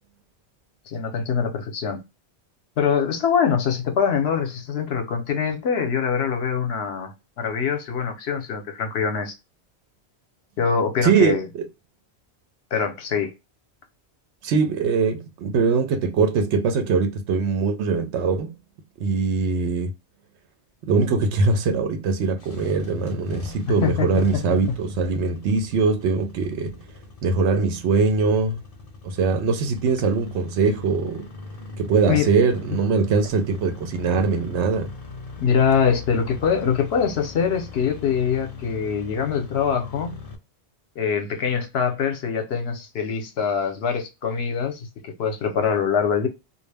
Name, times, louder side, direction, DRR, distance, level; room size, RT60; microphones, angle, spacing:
voice 1, 0.9-2.0 2.8-9.3 10.6-11.5 12.7-13.3 23.7-24.1 24.7-24.8 32.1-32.3 35.4-40.2 41.0-46.3, left 6 dB, 70° left, 0.9 m, -24 dB
voice 2, 11.0-11.7 14.4-18.5 19.0-19.9 20.8-26.8 27.2-28.6 29.0-31.3 31.8-34.9, right 4 dB, 85° right, 0.9 m, -22 dB
Engine starting, 22.3-40.4, left 3 dB, 45° left, 0.5 m, -39 dB
2.3 x 2.0 x 3.2 m
omnidirectional pair, 1.1 m